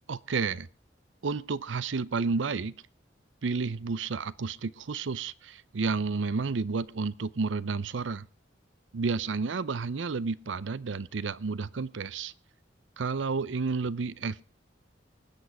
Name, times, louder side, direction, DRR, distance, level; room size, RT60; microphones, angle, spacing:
voice 1, 0.1-0.7 1.2-2.8 3.4-8.3 8.9-12.3 13.0-14.4, right 4 dB, 85° right, 19 dB, 0.6 m, -31 dB
20.0 x 8.1 x 4.7 m, 0.37 s
head